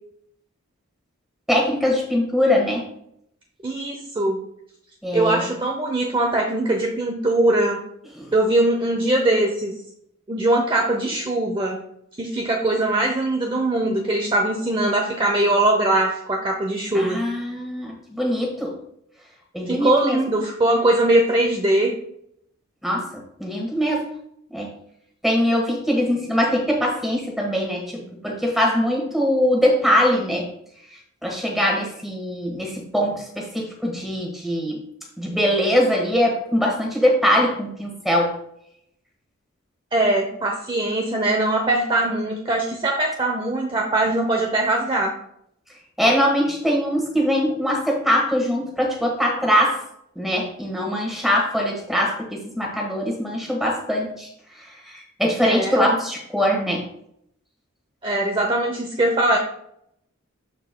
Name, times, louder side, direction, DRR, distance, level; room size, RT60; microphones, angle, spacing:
voice 1, 1.5-2.8 5.0-5.5 8.2-8.3 16.9-18.7 19.5-20.2 22.8-23.0 23.4-24.1 24.5-24.7 25.2-30.5 31.2-34.8 35.2-38.3 46.0-49.8 50.1-54.3 55.2-56.8, equal, ahead, -1 dB, 1.5 m, -22 dB
voice 2, 3.6-4.4 5.1-7.8 8.3-9.7 10.3-11.8 12.2-17.2 19.7-21.9 39.9-45.2 55.4-56.0 58.0-59.4, right 1 dB, 25° right, 1 dB, 0.7 m, -21 dB
12.0 x 4.5 x 2.2 m, 0.72 s
head